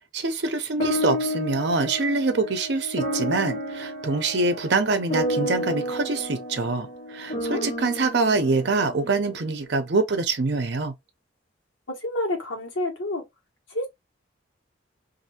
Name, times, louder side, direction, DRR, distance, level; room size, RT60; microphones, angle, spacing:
voice 1, 0.1-10.9, right 3 dB, 65° right, 0.6 m, -25 dB
sound 1, 0.8-9.5, equal, 40° left, 0.8 m, -31 dB
voice 2, 7.3-7.7 11.9-13.2 13.7-13.9, left 1 dB, 85° left, 1.2 m, -29 dB
2.6 x 2.6 x 2.7 m
head